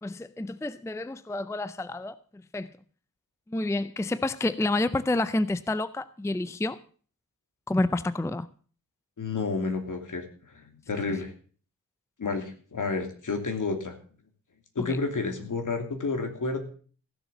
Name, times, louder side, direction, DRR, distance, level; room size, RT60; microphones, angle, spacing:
voice 1, 0.0-2.2 2.5-2.7 3.5-6.8 7.7-8.5 14.8-15.0, left 2 dB, 10° left, 0.5 m, -29 dB
voice 2, 9.2-11.3 12.2-13.9 14.7-16.6, left 4 dB, 60° left, 2.9 m, -30 dB
15.5 x 7.2 x 7.2 m
wide cardioid pair, 95°, 35 cm